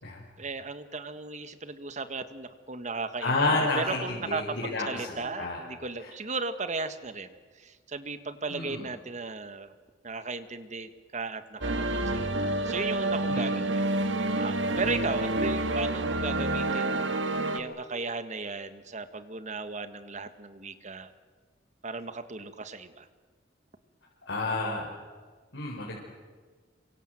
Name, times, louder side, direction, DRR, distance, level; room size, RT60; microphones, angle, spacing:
voice 1, 0.4-9.7 10.0-12.3 12.6-17.1 17.5-21.1 21.8-23.1, right 3 dB, 40° right, 11 dB, 1.6 m, -36 dB
voice 2, 3.2-5.1 5.4-5.6 6.0-6.1 8.5-8.9 13.3-13.6 24.3-24.9 25.5-26.0, left 2 dB, 85° left, -3 dB, 4.7 m, -30 dB
sound 1, 11.6-17.6, right 2 dB, 80° right, 2.1 m, -28 dB
27.5 x 24.5 x 7.8 m, 1.5 s
head